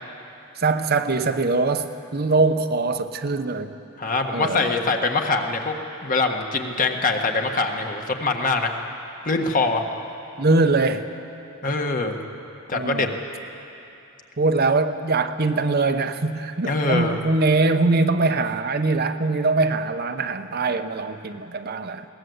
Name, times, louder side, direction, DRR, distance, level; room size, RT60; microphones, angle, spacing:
voice 1, 0.6-3.8 4.3-4.7 10.4-11.1 12.7-13.1 14.4-22.1, right 3 dB, 50° right, 8 dB, 0.8 m, -22 dB
voice 2, 4.0-5.7 6.0-8.8 9.2-9.8 11.6-12.2 12.7-13.1 16.6-17.2, left 3 dB, 40° left, 3 dB, 1.5 m, -23 dB
21.0 x 18.5 x 8.0 m, 2.8 s
head